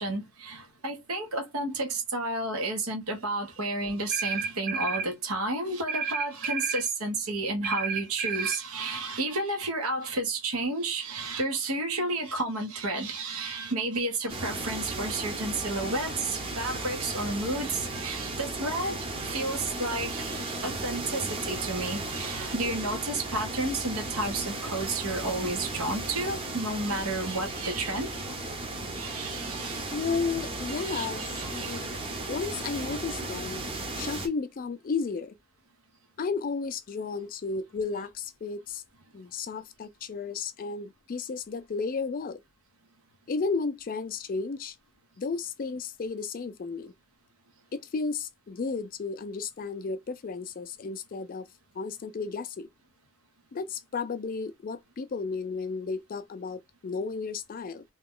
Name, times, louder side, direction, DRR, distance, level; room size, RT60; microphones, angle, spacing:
voice 1, 0.0-28.4 28.9-29.9 30.7-31.9, right 2 dB, 80° right, 1.2 m, -31 dB
sound 1, 4.1-5.1 5.9-6.9 7.6-8.6, right 5 dB, 40° right, 0.4 m, -31 dB
sound 2, 14.3-34.3, right 2 dB, 25° right, 0.7 m, -35 dB
voice 2, 29.9-31.9 32.3-33.6 34.0-35.4 36.2-38.8 39.1-42.4 43.3-44.8 45.2-46.9 47.7-51.5 51.8-52.7 53.5-57.8, left 4 dB, 40° left, 0.3 m, -33 dB
2.9 x 2.3 x 3.6 m
head